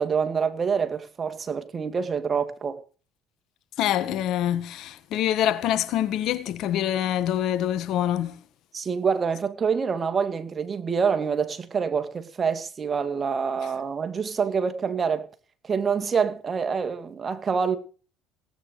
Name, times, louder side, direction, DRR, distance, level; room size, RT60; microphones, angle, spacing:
voice 1, 0.0-2.8 8.7-15.3 15.6-17.8, right 6 dB, 35° right, 2.2 m, -26 dB
voice 2, 3.8-8.3, left 11 dB, 60° left, 1.6 m, -25 dB
17.5 x 9.3 x 6.7 m
hypercardioid pair, 75°, 0 cm